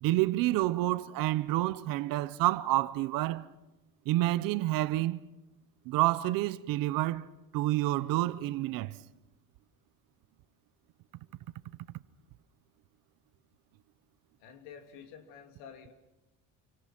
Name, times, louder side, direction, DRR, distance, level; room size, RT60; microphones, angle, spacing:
voice 1, 0.0-3.5 4.1-5.2 5.9-7.3 7.5-8.9, right 16 dB, 50° right, 0.8 m, -28 dB
voice 2, 14.4-15.9, left 7 dB, 70° left, 3.1 m, -49 dB
28.5 x 24.5 x 6.0 m
cardioid pair, 180°, 45 cm